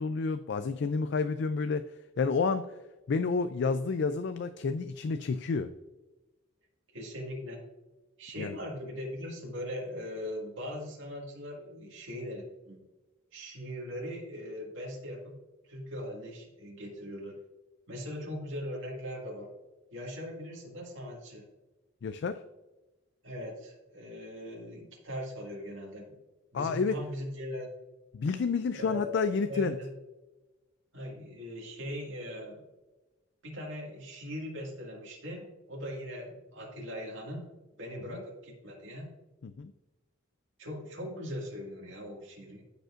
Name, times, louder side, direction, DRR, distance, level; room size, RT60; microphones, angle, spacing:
voice 1, 0.0-2.7 3.1-5.7 8.4-8.6 22.0-22.4 26.5-27.0 28.1-29.8 38.1-38.2 39.4-39.7, left 4 dB, 60° left, 10 dB, 0.4 m, -30 dB
voice 2, 6.9-7.6 8.2-12.8 13.3-15.3 15.6-17.4 17.9-19.5 19.9-21.5 23.2-26.1 26.5-27.7 28.7-29.9 30.9-32.6 33.4-37.4 37.8-39.1 40.6-42.6, equal, 80° right, -1 dB, 2.0 m, -40 dB
15.0 x 5.2 x 2.5 m, 1.1 s
head